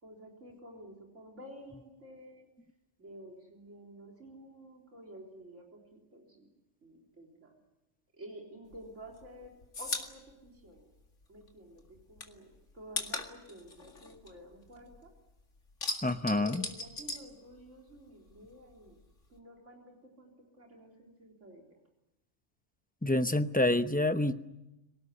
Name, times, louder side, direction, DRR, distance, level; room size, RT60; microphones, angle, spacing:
voice 1, 0.0-2.5 3.0-6.5 6.8-7.5 8.1-10.9 11.3-12.5 12.7-15.1 16.3-19.0 19.3-21.8, equal, 75° right, 0 dB, 4.3 m, -51 dB
sound 1, 8.7-11.5 11.8-15.1 15.4-18.0 18.3-19.4, left 3 dB, 80° left, 2.5 m, -39 dB
voice 2, 16.0-16.6 23.0-24.3, left 1 dB, 10° left, 10 dB, 0.7 m, -27 dB
25.5 x 18.0 x 9.8 m, 0.95 s
omnidirectional pair, 1.3 m